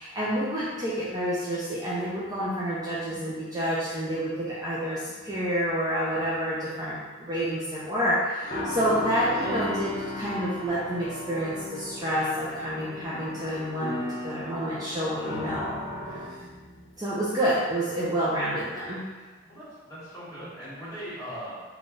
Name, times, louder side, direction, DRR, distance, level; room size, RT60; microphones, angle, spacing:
voice 1, 0.0-15.7 16.1-16.4 17.0-19.0, equal, 20° right, -8 dB, 0.4 m, -29 dB
sound 1, 8.4-16.9, left 1 dB, 35° left, 1.0 m, -36 dB
voice 2, 16.0-16.4 19.4-21.5, equal, 15° left, -12 dB, 1.5 m, -40 dB
3.7 x 2.3 x 3.8 m, 1.3 s
head